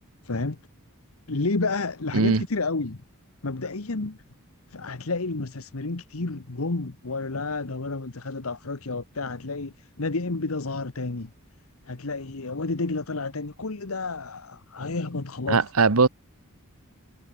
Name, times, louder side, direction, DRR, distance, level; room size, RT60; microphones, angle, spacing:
voice 1, 0.2-0.6 1.3-3.0 3.4-4.2 4.7-11.3 11.9-15.6, left 3 dB, 70° left, 1.2 m, -30 dB
voice 2, 15.5-16.1, right 4 dB, 75° right, 1.1 m, -20 dB
head